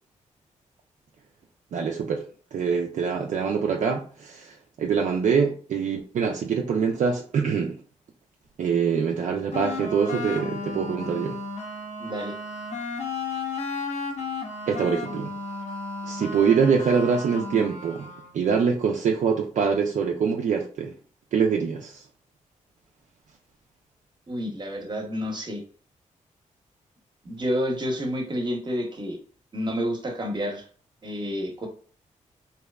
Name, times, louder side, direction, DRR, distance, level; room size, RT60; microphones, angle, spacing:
voice 1, 1.7-2.3 2.5-7.8 8.6-11.4 14.7-15.3 16.0-18.1 18.3-20.9 21.3-22.1, right 6 dB, 65° right, 0.4 m, -24 dB
sound 1, 9.5-18.3, left 3 dB, 55° left, 0.7 m, -34 dB
voice 2, 12.0-12.3 24.3-25.6 27.2-29.2 29.5-30.7 31.0-31.7, equal, 35° right, 0.8 m, -29 dB
2.7 x 2.2 x 2.2 m
cardioid pair, 65°, 14 cm